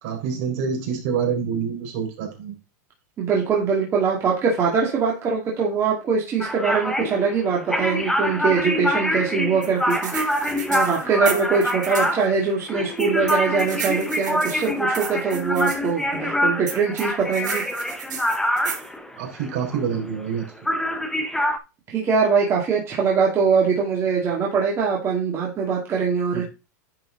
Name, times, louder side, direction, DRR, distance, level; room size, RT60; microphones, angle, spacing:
voice 1, 0.0-2.5 19.2-20.4 26.3-26.4, right 6 dB, 55° right, 0 dB, 4.0 m, -26 dB
voice 2, 3.2-10.1 10.5-17.6 21.9-26.4, right 5 dB, 25° right, -3 dB, 2.3 m, -22 dB
sound 1, 6.4-20.4 20.7-21.6, equal, 5° left, 0.9 m, -25 dB
sound 2, 9.6-12.1 13.0-15.8 16.7-18.9, right 7 dB, 85° right, 3.3 m, -33 dB
10.0 x 4.8 x 3.9 m, 0.28 s
supercardioid pair, 135°, 10 cm